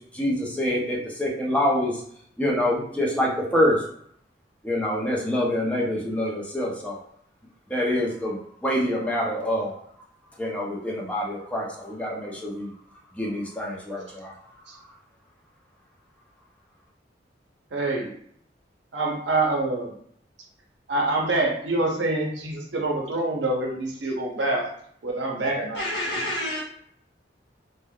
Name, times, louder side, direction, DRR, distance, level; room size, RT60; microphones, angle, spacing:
voice 1, 0.1-1.9 2.4-3.8 4.6-7.0 7.7-9.8 10.4-12.7 13.2-14.3, left 1 dB, 5° left, -3 dB, 0.5 m, -26 dB
voice 2, 17.7-18.1 18.9-19.9 20.9-24.7 25.0-25.8, right 2 dB, 75° right, 0 dB, 0.7 m, -26 dB
voice 3, 25.7-26.6, left 1 dB, 75° left, -5 dB, 1.1 m, -28 dB
3.3 x 2.1 x 2.2 m, 0.66 s
head